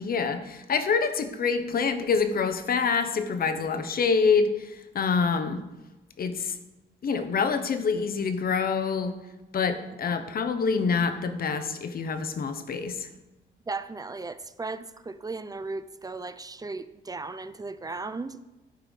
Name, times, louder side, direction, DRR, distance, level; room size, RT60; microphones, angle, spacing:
voice 1, 0.0-5.6 6.2-6.6 7.0-9.1 9.5-13.1, left 5 dB, 50° left, 9 dB, 1.0 m, -26 dB
voice 2, 13.7-18.4, right 3 dB, 20° right, 13 dB, 0.4 m, -36 dB
11.5 x 4.6 x 5.3 m, 1.1 s
cardioid pair, 90°, 20 cm